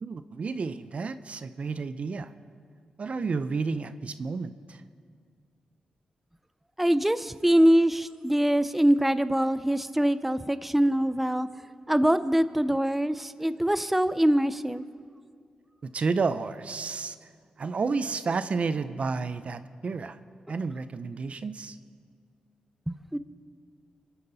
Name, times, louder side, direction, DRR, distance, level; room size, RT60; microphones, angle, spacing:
voice 1, 0.0-2.3 3.0-4.8 15.8-17.3 17.6-20.2 20.5-21.8, right 4 dB, 55° right, 12 dB, 0.6 m, -31 dB
voice 2, 6.8-11.5 11.9-14.8 22.9-23.2, equal, 5° right, 13 dB, 0.5 m, -24 dB
27.5 x 9.6 x 4.1 m, 2.1 s
cardioid pair, 55°, 3 cm